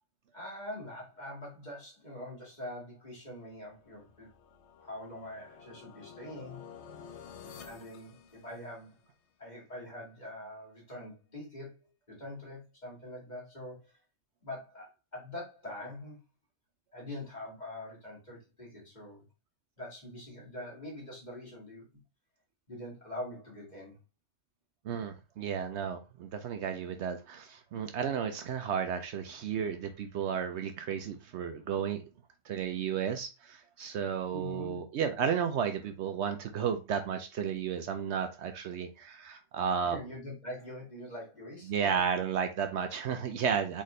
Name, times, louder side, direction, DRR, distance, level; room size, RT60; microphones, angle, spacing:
voice 1, 0.3-4.3 4.8-6.6 7.6-9.0 9.4-13.9 14.4-16.2 16.9-19.3 19.8-21.9 22.7-24.0 34.3-34.8 39.8-42.0, left 1 dB, 35° left, 2.0 m, -44 dB
sound 1, 3.8-9.0, left 7 dB, 65° left, 0.9 m, -51 dB
voice 2, 24.8-32.0 32.4-40.0 41.7-43.8, right 7 dB, 70° right, 0.8 m, -33 dB
4.1 x 3.6 x 3.1 m
omnidirectional pair, 1.3 m